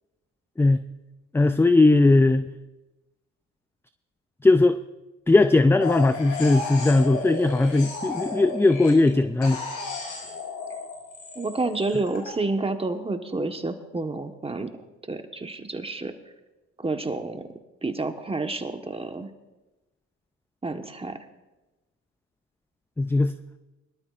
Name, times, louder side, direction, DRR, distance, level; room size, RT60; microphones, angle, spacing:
voice 1, 1.3-2.4 4.4-4.8 5.3-9.6 23.0-23.3, left 2 dB, 5° left, 11 dB, 0.4 m, -19 dB
sound 1, 5.8-9.1 9.4-12.3, left 3 dB, 70° left, 5.5 m, -34 dB
voice 2, 11.3-14.7 15.1-16.1 16.8-17.5 17.8-19.3 20.6-21.2, right 3 dB, 15° right, 6 dB, 1.2 m, -29 dB
22.5 x 12.5 x 2.5 m, 1.1 s
supercardioid pair, 75°, 33 cm